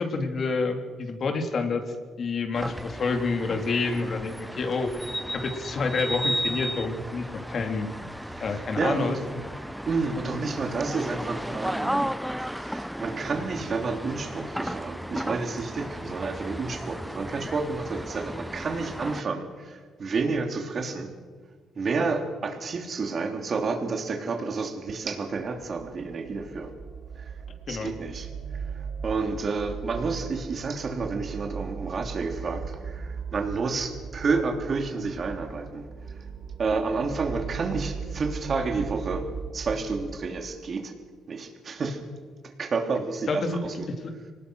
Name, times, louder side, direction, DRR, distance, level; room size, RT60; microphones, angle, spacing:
voice 1, 0.0-1.8 2.2-4.9 5.3-7.9 8.4-9.2 27.7-27.9 43.3-43.6, left 4 dB, 50° left, 6 dB, 3.2 m, -28 dB
sound 1, 2.5-19.2, equal, ahead, 0.6 m, -34 dB
voice 2, 8.3-9.1 9.9-12.1 12.4-21.1 21.7-26.7 27.2-27.4 27.7-35.8 36.6-39.3 39.5-40.9 41.3-42.0 42.4-43.9, right 4 dB, 45° right, 4 dB, 3.2 m, -30 dB
sound 2, 25.4-40.2, right 6 dB, 65° right, 5.9 m, -38 dB
24.5 x 19.5 x 6.3 m, 1.5 s
cardioid pair, 90°, 0 cm